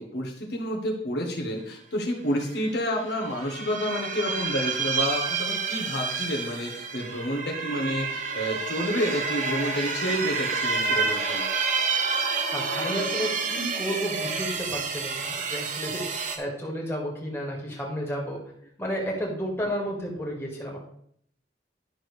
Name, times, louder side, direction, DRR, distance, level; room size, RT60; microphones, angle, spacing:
voice 1, 0.0-11.5, equal, 60° left, -1 dB, 1.3 m, -29 dB
sound 1, 2.5-2.7 3.0-16.4, right 4 dB, 40° right, 0.9 m, -29 dB
voice 2, 12.5-18.5 18.8-20.8, equal, 15° left, -2 dB, 2.0 m, -32 dB
11.5 x 6.3 x 3.3 m, 0.67 s
head